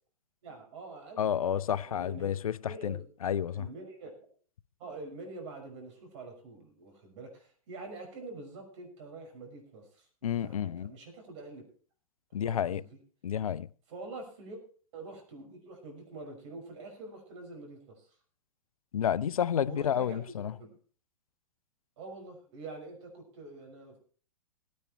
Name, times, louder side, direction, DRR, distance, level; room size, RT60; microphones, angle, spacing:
voice 1, 0.4-2.3 2.6-3.1 3.5-4.3 4.8-11.6 12.4-13.0 13.9-14.6 14.9-18.1 19.6-20.2 20.6-20.8 22.0-24.0, right 3 dB, 55° right, 6.0 m, -46 dB
voice 2, 1.2-2.6 2.8-3.0 3.2-3.6 10.2-10.9 12.3-12.8 13.2-13.7 18.9-20.5, left 9 dB, 75° left, 0.5 m, -30 dB
17.5 x 9.5 x 4.5 m
hypercardioid pair, 110°, 18 cm